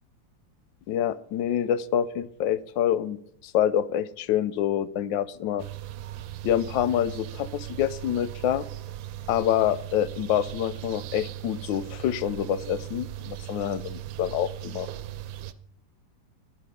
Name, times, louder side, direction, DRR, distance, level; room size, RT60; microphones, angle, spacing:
voice 1, 0.9-5.7 6.4-8.6 9.3-14.9, left 10 dB, 85° left, 15 dB, 1.3 m, -27 dB
sound 1, 5.6-15.5, right 13 dB, 90° right, 1.4 m, -38 dB
9.6 x 9.4 x 5.0 m, 0.71 s
omnidirectional pair, 2.0 m